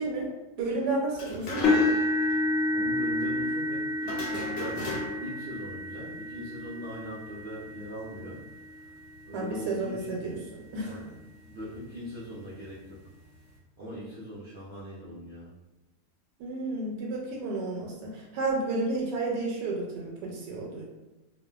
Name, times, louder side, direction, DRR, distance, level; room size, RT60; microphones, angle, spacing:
voice 1, 0.0-1.9 9.3-10.4 10.7-11.0 16.4-20.8, right 2 dB, 85° right, -1 dB, 1.2 m, -31 dB
sound 1, 1.1-2.0 2.3-2.4 4.0-5.4, left 2 dB, 90° left, 1.2 m, -36 dB
sound 2, 1.6-9.7 10.3-10.5 11.0-11.1 12.5-12.6, left 2 dB, 60° left, 0.7 m, -30 dB
voice 2, 2.7-8.4 8.7-8.8 9.3-10.2 10.8-11.2 11.4-13.0 13.8-15.5, equal, 60° right, -10 dB, 0.6 m, -41 dB
2.6 x 2.4 x 2.2 m, 1.0 s
omnidirectional pair, 1.8 m